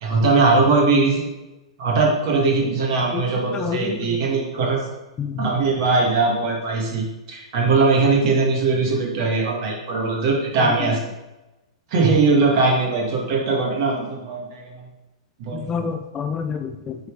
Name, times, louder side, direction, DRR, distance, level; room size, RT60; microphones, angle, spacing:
voice 1, 0.0-1.2 1.8-4.9 5.4-11.1 11.9-14.9 15.4-15.9, right 3 dB, 45° right, -1 dB, 2.3 m, -20 dB
voice 2, 3.5-4.1 5.2-5.5 15.5-17.0, left 6 dB, 20° left, 6 dB, 0.5 m, -28 dB
7.9 x 4.4 x 5.0 m, 1.0 s
figure-of-eight pair, 105°, 3 cm